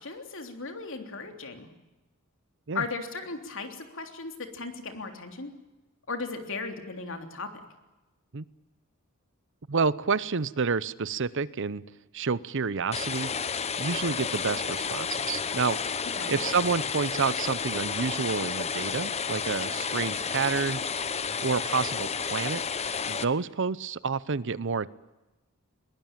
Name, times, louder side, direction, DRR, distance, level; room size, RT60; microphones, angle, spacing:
voice 1, 0.0-1.7 2.7-5.5 6.1-7.5 16.2-16.4, left 4 dB, 65° left, 5 dB, 3.3 m, -36 dB
voice 2, 9.7-11.8 12.1-13.3 13.8-15.8 16.3-20.8 21.4-22.6 23.1-24.9, right 5 dB, 60° right, 18 dB, 0.8 m, -29 dB
sound 1, 12.9-23.2, left 6 dB, 30° left, 0.9 m, -31 dB
22.0 x 20.5 x 9.0 m, 1.1 s
head